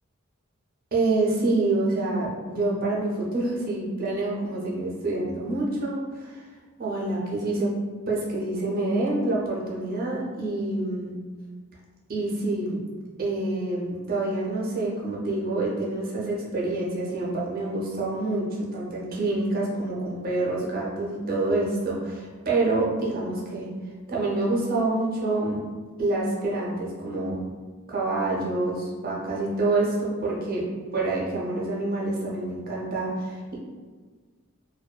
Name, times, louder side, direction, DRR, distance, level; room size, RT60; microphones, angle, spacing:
voice 1, 0.9-6.4 6.8-7.7 8.1-11.1 12.1-12.8 13.2-18.4 18.7-23.7 24.1-25.6 26.0-27.4 27.9-30.6 30.9-33.6, right 2 dB, 45° right, -4 dB, 0.6 m, -27 dB
2.6 x 2.2 x 2.2 m, 1.5 s
head